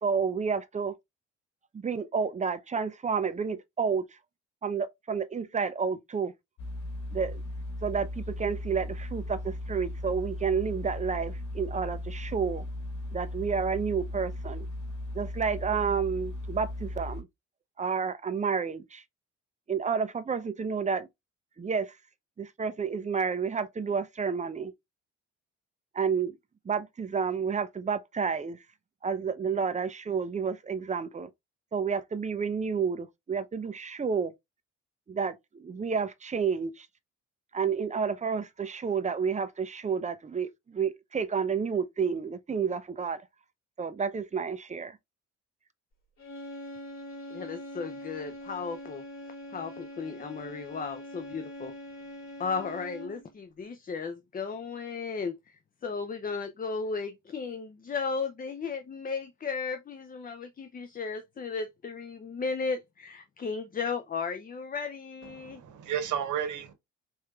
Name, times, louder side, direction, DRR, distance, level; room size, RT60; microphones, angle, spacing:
voice 1, 0.0-0.9 1.7-4.1 4.6-6.3 7.1-7.4 7.8-12.6 13.1-14.7 15.1-17.3 17.8-19.0 19.7-21.1 21.6-22.0 22.4-24.7 25.9-26.4 26.6-28.6 29.0-31.3 31.7-34.3 35.1-36.9 37.5-43.2 43.8-45.0, right 6 dB, 25° right, 0.6 m, -30 dB
sound 1, 6.6-17.2, left 1 dB, 70° left, 1.6 m, -37 dB
sound 2, 46.2-53.3, left 1 dB, 45° left, 2.5 m, -43 dB
voice 2, 47.3-49.0 49.5-51.7 52.4-65.6, left 5 dB, 30° left, 0.6 m, -35 dB
voice 3, 65.4-66.7, right 9 dB, 75° right, 1.1 m, -32 dB
4.4 x 3.3 x 2.3 m
cardioid pair, 90°, 30 cm